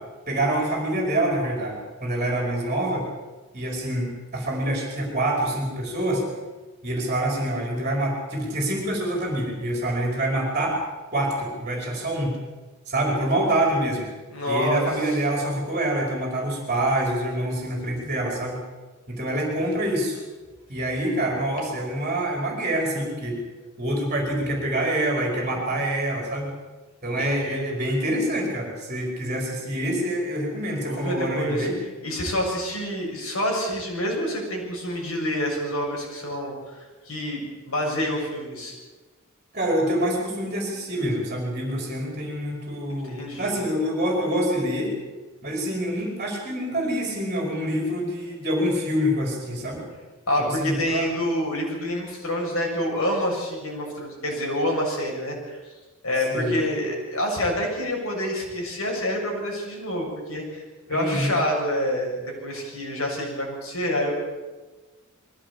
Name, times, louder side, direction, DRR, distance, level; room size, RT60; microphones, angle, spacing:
voice 1, 0.3-3.1 3.5-6.2 6.8-10.8 11.1-12.4 12.9-14.1 14.5-18.6 19.1-20.2 20.7-23.4 23.8-26.5 27.0-31.8 39.5-44.9 45.4-49.8 50.4-51.1 56.3-56.6 60.9-61.3, right 1 dB, 35° right, 0 dB, 4.9 m, -26 dB
voice 2, 14.3-14.9 27.2-27.6 30.8-31.7 32.0-37.4 37.7-38.7 42.9-43.5 50.3-55.6 56.0-60.6 60.9-64.2, left 1 dB, 70° left, -1 dB, 7.2 m, -27 dB
22.0 x 16.0 x 8.5 m, 1.3 s
head